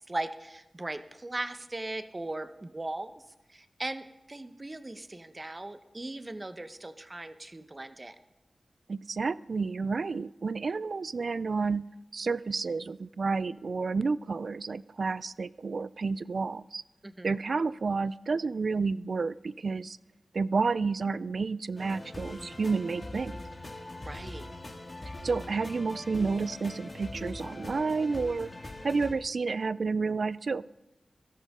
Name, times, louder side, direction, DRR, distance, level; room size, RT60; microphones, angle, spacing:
voice 1, 0.1-3.1 3.5-8.2 17.0-17.3 24.1-24.5, right 2 dB, 35° right, 10 dB, 0.9 m, -38 dB
voice 2, 8.9-11.9 12.1-16.8 17.2-20.0 20.3-23.3 25.2-30.7, right 4 dB, 70° right, 19 dB, 0.3 m, -30 dB
sound 1, 21.8-29.1, left 2 dB, 40° left, 2.0 m, -42 dB
16.5 x 13.0 x 3.7 m, 0.99 s
cardioid pair, 45°, 0 cm